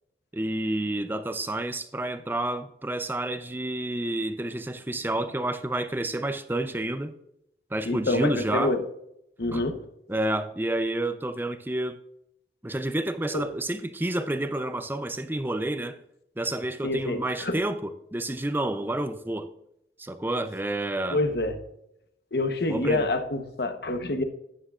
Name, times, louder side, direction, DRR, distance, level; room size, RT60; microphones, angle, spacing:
voice 1, 0.3-7.2 7.7-8.7 9.5-9.6 10.1-12.0 12.6-16.0 16.4-19.5 20.0-21.2 22.7-23.1, right 1 dB, 10° right, 0.5 m, -29 dB
voice 2, 7.8-8.9 9.4-9.9 13.3-13.5 16.8-17.6 21.1-21.6 22.3-24.2, left 2 dB, 60° left, 1.0 m, -27 dB
13.0 x 9.3 x 2.4 m
head